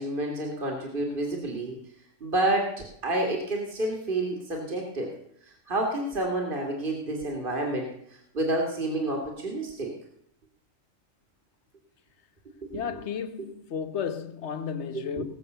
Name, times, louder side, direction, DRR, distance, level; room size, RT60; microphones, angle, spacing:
voice 1, 0.0-1.8 2.2-5.1 5.4-9.9 12.6-13.0 14.9-15.2, right 1 dB, 40° right, 2.6 m, -29 dB
voice 2, 12.7-15.2, left 7 dB, 60° left, 1.2 m, -33 dB
19.5 x 7.6 x 6.8 m
omnidirectional pair, 1.4 m